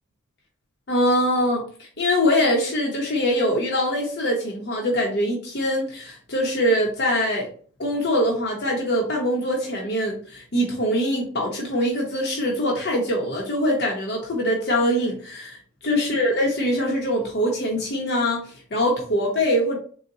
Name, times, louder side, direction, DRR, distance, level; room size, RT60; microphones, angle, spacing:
voice 1, 0.9-7.5 7.8-15.6 15.8-19.8, equal, 55° left, -1 dB, 0.8 m, -23 dB
4.0 x 2.1 x 3.8 m, 0.43 s
head